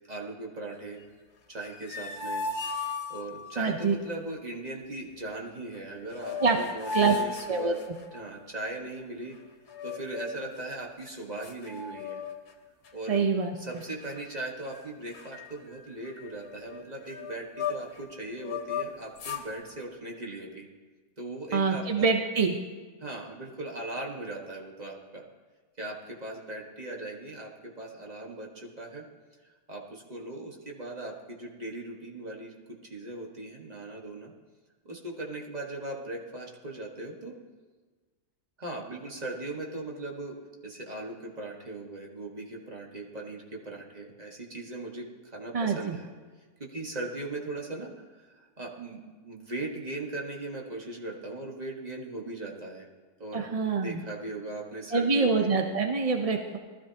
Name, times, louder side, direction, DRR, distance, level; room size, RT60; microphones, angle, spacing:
voice 1, 0.1-1.0 1.5-2.4 2.8-7.8 8.1-9.4 9.8-12.2 12.9-13.3 13.5-20.7 21.2-22.1 23.0-25.2 25.8-29.0 29.4-32.5 32.8-34.3 34.8-37.4 38.6-40.4 40.6-46.1 46.6-52.9 53.2-55.5, right 2 dB, 25° right, -1 dB, 1.6 m, -39 dB
sound 1, 1.6-3.6 5.8-5.9 6.1-8.3 9.7-10.5 11.0-11.1 11.4-12.5 12.8-13.2 13.8-14.4 14.7-14.8 15.1-18.0 18.4-19.5, left 5 dB, 85° left, 1.7 m, -36 dB
voice 2, 3.6-3.9 6.4-6.6 6.9-7.1 7.5-7.7 13.1-13.5 21.5-22.5 45.5-46.0 53.3-54.0 54.9-56.6, right 4 dB, 45° right, 3 dB, 0.4 m, -25 dB
19.5 x 13.0 x 2.9 m, 1.4 s
omnidirectional pair, 1.7 m